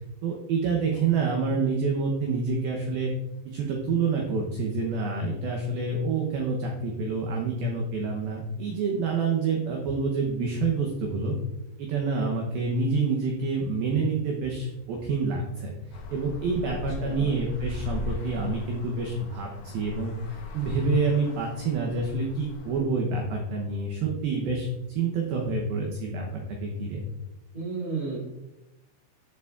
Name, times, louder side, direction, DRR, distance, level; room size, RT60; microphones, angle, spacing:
voice 1, 0.2-3.1 3.5-11.3 11.8-24.7 25.0-27.0, right 4 dB, 85° right, 0 dB, 2.1 m, -27 dB
Traffic noise roadway noise, 15.9-22.8, left 4 dB, 80° left, 2.1 m, -39 dB
voice 2, 16.7-17.3 27.5-28.2, right 4 dB, 25° right, -7 dB, 2.1 m, -33 dB
11.5 x 6.9 x 2.4 m, 0.98 s
omnidirectional pair, 5.6 m